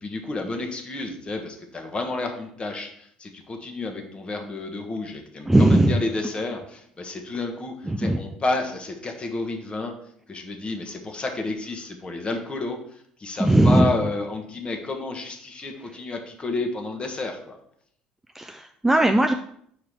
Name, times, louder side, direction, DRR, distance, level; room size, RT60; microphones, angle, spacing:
voice 1, 0.0-9.9 10.3-17.6, left 2 dB, 25° left, 4 dB, 1.3 m, -31 dB
voice 2, 5.5-6.0 7.9-8.2 13.4-13.9 18.4-19.3, right 1 dB, 10° right, 6 dB, 0.4 m, -18 dB
5.1 x 4.7 x 5.8 m, 0.67 s
figure-of-eight pair, 55°, 4 cm